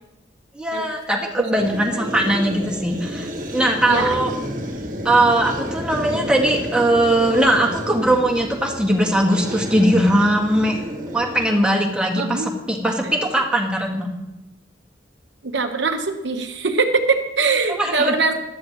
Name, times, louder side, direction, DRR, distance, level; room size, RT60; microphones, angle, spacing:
voice 1, 0.5-4.3 5.0-10.7 11.1-14.1 17.8-18.1, right 1 dB, 5° right, -1 dB, 1.8 m, -20 dB
sound 1, 1.6-12.0, equal, 45° right, 1.5 m, -30 dB
voice 2, 3.9-4.3 12.1-12.5 15.4-18.4, right 4 dB, 75° right, 5 dB, 1.1 m, -22 dB
15.5 x 12.5 x 3.0 m, 0.95 s
head